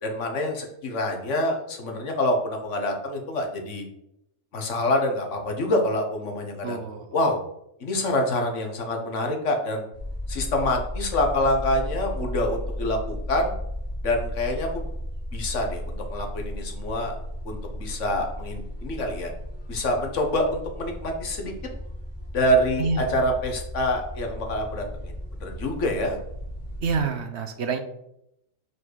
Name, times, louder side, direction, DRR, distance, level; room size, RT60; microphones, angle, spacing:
voice 1, 0.0-3.9 4.5-6.8 7.1-7.4 7.8-9.9 10.3-13.5 14.0-14.8 15.3-17.2 17.4-19.3 19.7-21.5 22.3-25.1 25.4-26.2, left 1 dB, 55° left, 3 dB, 1.6 m, -26 dB
voice 2, 6.6-7.1 22.8-23.1 26.8-27.8, right 4 dB, 55° right, 6 dB, 1.1 m, -27 dB
sound 1, 9.9-27.0, left 1 dB, 35° left, 1.5 m, -35 dB
5.6 x 4.8 x 6.2 m, 0.79 s
omnidirectional pair, 1.5 m